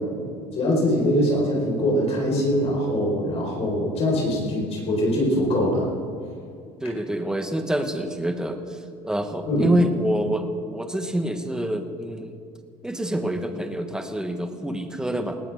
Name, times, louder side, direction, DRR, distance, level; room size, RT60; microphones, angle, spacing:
voice 1, 0.5-5.9 9.4-9.7, equal, 45° left, -3 dB, 5.0 m, -23 dB
voice 2, 6.8-12.3 12.8-15.4, equal, 5° right, 6 dB, 1.4 m, -26 dB
19.5 x 17.5 x 3.7 m, 2.3 s
cardioid pair, 115°, 15 cm